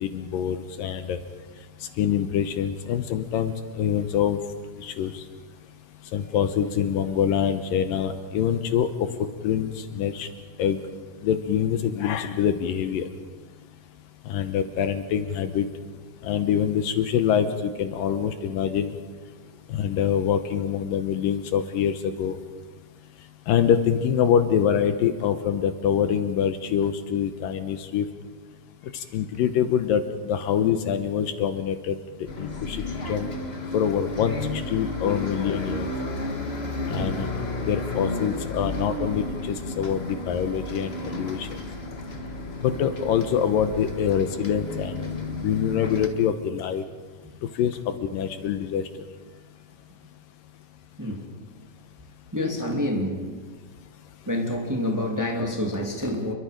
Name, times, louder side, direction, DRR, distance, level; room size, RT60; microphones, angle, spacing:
voice 1, 0.0-1.2 2.0-4.4 4.8-5.2 6.1-8.9 9.2-10.3 10.6-10.8 11.2-13.1 14.3-15.7 16.2-18.9 19.7-22.4 23.5-28.1 29.1-32.0 32.4-32.8 33.1-33.3 33.7-35.9 36.9-37.3 37.7-41.6 42.6-45.1 45.4-46.8 47.6-48.8, left 8 dB, 75° left, 9 dB, 2.5 m, -25 dB
Bus, 32.3-46.1, left 2 dB, 50° left, 0.7 m, -32 dB
voice 2, 52.3-53.2 54.3-56.3, left 1 dB, 5° right, 0 dB, 2.1 m, -28 dB
29.0 x 23.0 x 5.2 m, 1.4 s
omnidirectional pair, 4.3 m